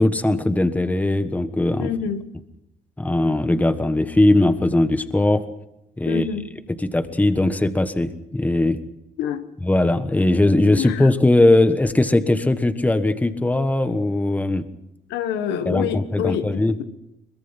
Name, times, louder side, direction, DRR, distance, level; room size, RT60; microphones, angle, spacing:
voice 1, 0.0-1.9 3.0-5.4 6.0-6.3 6.8-8.8 9.6-14.6 15.6-16.8, left 2 dB, 10° left, 10 dB, 1.4 m, -19 dB
voice 2, 1.8-2.2 6.1-6.5 9.2-9.4 10.4-11.1 15.1-16.8, left 9 dB, 85° left, 9 dB, 1.6 m, -27 dB
22.5 x 21.5 x 5.9 m, 0.87 s
cardioid pair, 110°, 17 cm